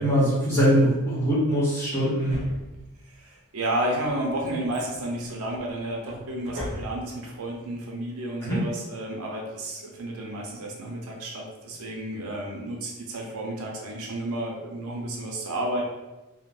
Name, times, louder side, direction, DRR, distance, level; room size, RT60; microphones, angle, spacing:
voice 1, 0.0-2.4 8.4-8.6, equal, 10° left, -9 dB, 1.0 m, -22 dB
Drawer open or close, 2.3-3.2 3.8-7.3 7.5-7.6, left 1 dB, 30° right, 0.9 m, -39 dB
voice 2, 3.0-15.8, right 1 dB, 70° right, -1 dB, 0.6 m, -31 dB
3.7 x 2.1 x 2.4 m, 1.0 s
head